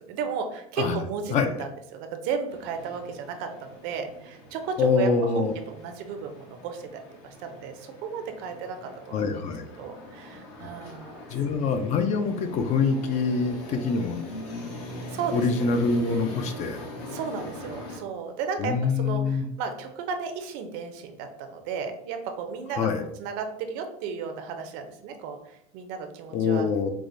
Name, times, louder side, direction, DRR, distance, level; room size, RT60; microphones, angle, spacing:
voice 1, 0.1-9.2 9.8-11.2 15.1-15.7 17.1-22.9 23.2-26.7, right 6 dB, 65° right, 6 dB, 0.6 m, -34 dB
sound 1, 2.5-18.0, left 1 dB, 70° left, 1.2 m, -41 dB
voice 2, 4.8-5.5 9.1-9.7 11.3-14.2 15.3-16.8 18.6-19.5 22.8-23.0 26.3-26.9, left 4 dB, 40° left, 7 dB, 0.4 m, -25 dB
4.7 x 2.1 x 2.5 m, 0.74 s
supercardioid pair, 130°, 19 cm